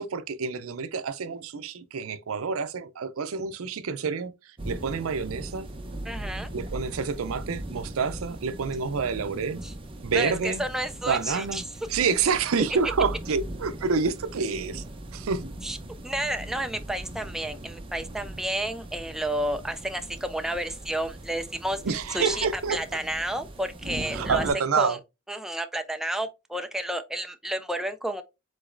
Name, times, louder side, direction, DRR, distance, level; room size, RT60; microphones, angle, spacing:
voice 1, 0.0-4.3 4.7-5.7 6.5-9.6 10.0-10.6 11.1-11.6 11.9-14.8 15.1-15.4 21.8-22.8 24.1-25.0, right 5 dB, 80° right, 0.5 m, -28 dB
sound 1, 4.6-24.5, right 1 dB, 25° right, 0.7 m, -39 dB
voice 2, 6.1-6.5 9.6-9.7 10.1-11.7 15.6-15.8 16.0-21.8 22.1-24.5 24.8-25.0 25.3-28.2, right 1 dB, ahead, 0.3 m, -31 dB
5.0 x 3.9 x 2.5 m
head